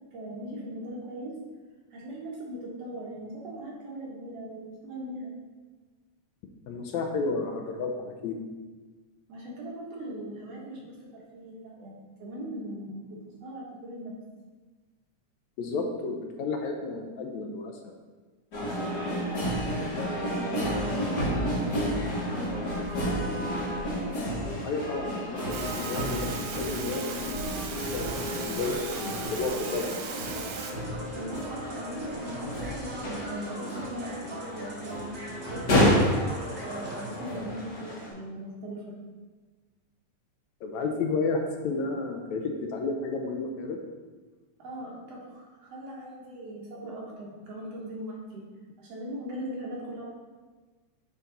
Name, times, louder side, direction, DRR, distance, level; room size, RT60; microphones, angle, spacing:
voice 1, 0.1-1.4 1.9-5.3 9.3-14.2 19.1-23.3 31.1-35.2 35.5-39.0 44.6-48.4 48.8-50.1, right 1 dB, 60° right, -4 dB, 2.2 m, -40 dB
voice 2, 6.7-8.4 15.6-17.9 24.6-29.9 40.6-43.8, left 3 dB, 80° left, 3 dB, 1.9 m, -32 dB
sound 1, 18.5-38.1, equal, 40° left, 1.7 m, -31 dB
sound 2, 25.5-30.7, right 5 dB, 90° right, 2.2 m, -37 dB
sound 3, 28.0-37.1, right 1 dB, 45° right, 1.0 m, -40 dB
8.4 x 4.0 x 3.9 m, 1.3 s
omnidirectional pair, 3.3 m